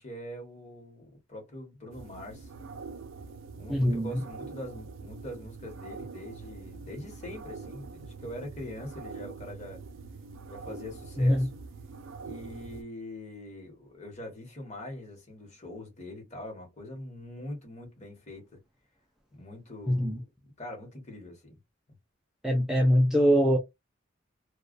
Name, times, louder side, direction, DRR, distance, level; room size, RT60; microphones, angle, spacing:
voice 1, 0.0-2.5 3.5-9.8 10.5-11.6 12.2-18.6 19.3-21.6, left 1 dB, 35° left, 1.1 m, -43 dB
sound 1, 1.9-12.8, right 4 dB, 80° right, 0.4 m, -44 dB
voice 2, 3.7-4.2 11.2-11.5 19.9-20.2 22.4-23.6, equal, ahead, 0.3 m, -23 dB
2.3 x 2.2 x 2.4 m
head